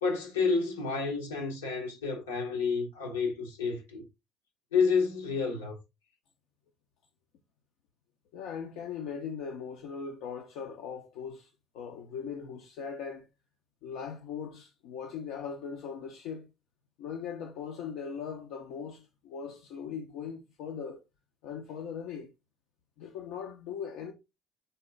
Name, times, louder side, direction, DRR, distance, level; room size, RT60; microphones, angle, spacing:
voice 1, 0.0-4.0 4.7-5.8, left 5 dB, 85° left, 0.9 m, -29 dB
voice 2, 8.3-13.3 13.8-16.5 17.0-21.0 21.4-22.3 23.0-24.1, left 7 dB, 70° left, 0.5 m, -39 dB
3.7 x 2.8 x 3.2 m
hypercardioid pair, 55°, 0 cm